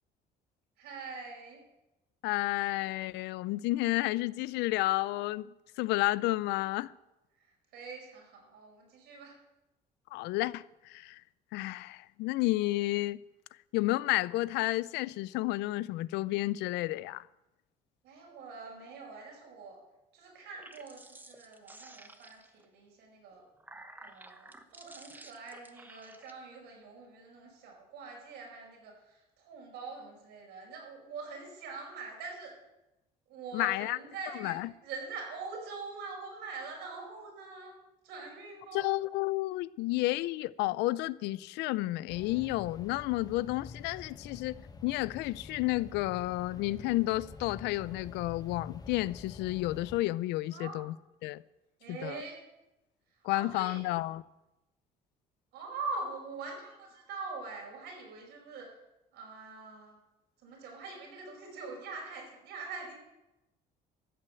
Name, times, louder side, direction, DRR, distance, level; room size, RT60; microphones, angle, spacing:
voice 1, 0.8-1.6 7.4-9.4 18.0-19.8 20.1-23.4 24.0-32.5 33.3-34.6 34.8-37.7 38.0-39.0 50.5-50.8 51.8-52.4 53.3-53.8 55.5-58.7 59.1-60.0 60.4-62.9, right 4 dB, 90° right, 5.3 m, -44 dB
voice 2, 2.2-6.9 10.1-11.2 11.5-13.2 13.7-17.3 33.5-34.0 34.4-34.7 38.7-51.0 51.2-51.4 51.9-52.2 53.2-54.2, left 18 dB, 90° left, 0.4 m, -31 dB
sound 1, 20.4-22.7 23.3-26.3, right 2 dB, 10° right, 1.0 m, -53 dB
sound 2, 42.1-50.0, left 4 dB, 20° left, 0.9 m, -48 dB
14.0 x 7.7 x 7.7 m
cardioid pair, 110°, 17 cm